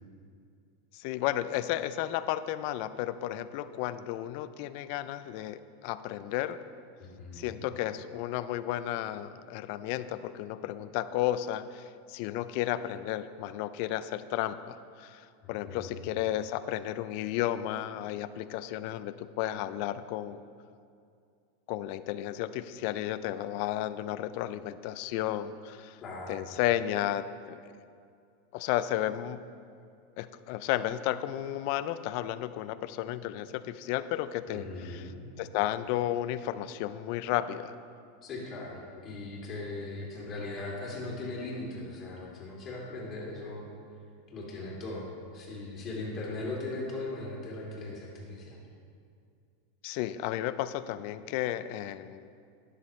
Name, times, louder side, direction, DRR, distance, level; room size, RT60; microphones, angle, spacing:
voice 1, 0.9-6.6 7.3-20.4 21.7-26.0 26.3-27.7 28.5-29.4 30.2-35.1 35.4-37.7 49.8-52.3, left 13 dB, 55° left, 14 dB, 0.4 m, -33 dB
voice 2, 7.0-7.7 15.4-16.1 26.0-26.4 34.5-35.2 38.2-43.7 44.3-48.6, left 2 dB, 30° left, -4 dB, 2.7 m, -39 dB
12.0 x 10.5 x 3.2 m, 2.4 s
supercardioid pair, 145°, 0 cm